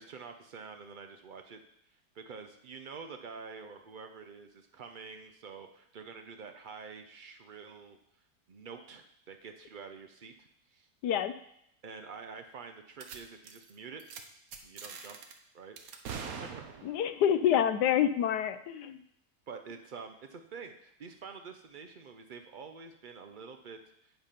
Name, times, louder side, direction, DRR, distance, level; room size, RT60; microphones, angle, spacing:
voice 1, 0.0-1.6 2.1-8.0 8.5-10.9 11.8-14.0 14.6-15.2 15.5-15.8 16.2-16.5 16.8-16.9 19.5-24.1, right 5 dB, 85° right, 6 dB, 0.4 m, -47 dB
voice 2, 11.0-11.3 16.8-19.0, left 9 dB, 90° left, 11 dB, 1.3 m, -27 dB
sound 1, 13.0-13.2 13.4-13.7 14.0-14.2 14.5-15.3 15.8-17.1, right 6 dB, 65° right, 1.3 m, -42 dB
9.4 x 5.2 x 5.7 m, 0.74 s
omnidirectional pair, 1.7 m